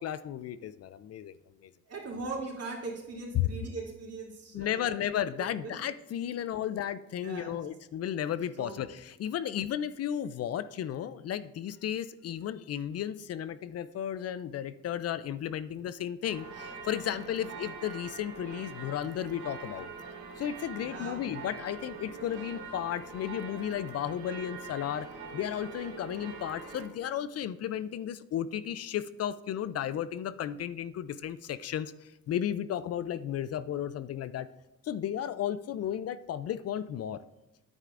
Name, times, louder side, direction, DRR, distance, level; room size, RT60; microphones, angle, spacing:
voice 1, 0.0-1.4 1.6-1.7 3.3-3.5 4.5-19.9 20.4-25.1 25.3-34.5 34.8-37.2, left 10 dB, 55° left, 15 dB, 0.4 m, -34 dB
voice 2, 1.9-5.0 5.4-5.7 7.2-7.6 8.6-8.8 17.3-17.4 20.8-21.2, right 3 dB, 55° right, -2 dB, 2.8 m, -40 dB
sound 1, 16.3-26.9, right 4 dB, 75° right, 2.0 m, -44 dB
9.9 x 9.1 x 2.5 m, 0.97 s
cardioid pair, 90°, 30 cm